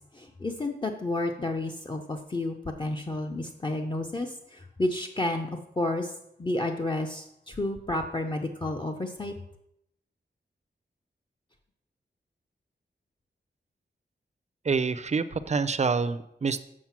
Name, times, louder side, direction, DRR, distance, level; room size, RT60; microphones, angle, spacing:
voice 1, 0.1-5.5 5.8-6.1 6.4-9.3, left 2 dB, 25° left, 3 dB, 0.7 m, -31 dB
voice 2, 14.6-16.6, right 4 dB, 40° right, 11 dB, 0.5 m, -27 dB
7.5 x 6.5 x 5.9 m, 0.79 s
wide cardioid pair, 120°, 19 cm